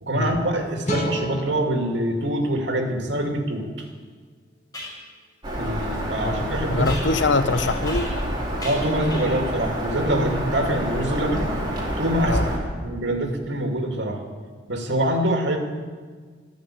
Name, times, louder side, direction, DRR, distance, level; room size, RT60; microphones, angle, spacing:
voice 1, 0.0-3.7 5.6-6.9 8.6-11.6 12.0-12.5 12.7-14.2 14.7-15.6, right 1 dB, 75° right, 3 dB, 2.4 m, -24 dB
sound 1, 0.8-4.0, equal, 40° left, 1.9 m, -33 dB
sound 2, 3.8-3.9 4.7-5.0 6.9-8.3 8.6-9.5, left 1 dB, 20° left, 5.3 m, -38 dB
Bird vocalization bird call bird song, 5.4-12.6, equal, 25° right, 3.4 m, -28 dB
voice 2, 6.2-8.1 12.2-12.5, left 3 dB, 80° left, 10 dB, 0.9 m, -24 dB
12.5 x 12.0 x 8.5 m, 1.5 s
head